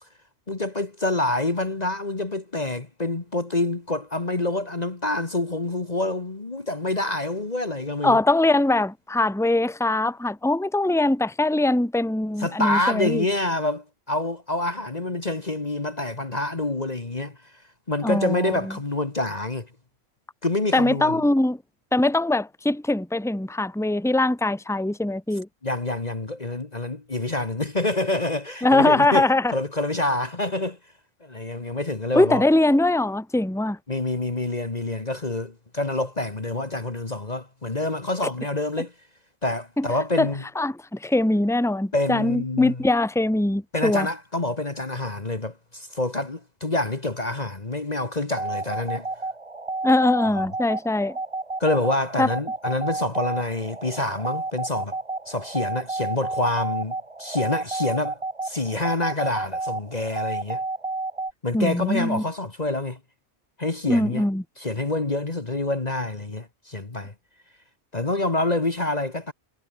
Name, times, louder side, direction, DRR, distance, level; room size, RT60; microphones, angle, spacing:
voice 1, 0.5-8.2 12.4-17.4 17.9-19.7 20.4-21.2 25.6-30.8 31.2-32.4 33.9-38.9 39.4-40.4 41.9-42.9 43.7-49.1 50.3-50.4 51.6-55.0 55.3-60.6 61.4-63.0 63.6-64.2 64.6-67.1 67.9-69.3, left 2 dB, 35° left, 1.9 m, -27 dB
voice 2, 8.0-13.3 18.0-18.7 20.7-21.6 21.9-25.5 28.6-29.5 32.1-33.8 39.8-39.9 40.2-40.3 40.6-44.1 49.8-51.2 52.2-52.3 61.5-62.2 63.9-64.4, left 2 dB, ahead, 1.9 m, -22 dB
sound 1, 48.3-61.3, right 3 dB, 25° right, 1.8 m, -31 dB
omnidirectional pair, 1.3 m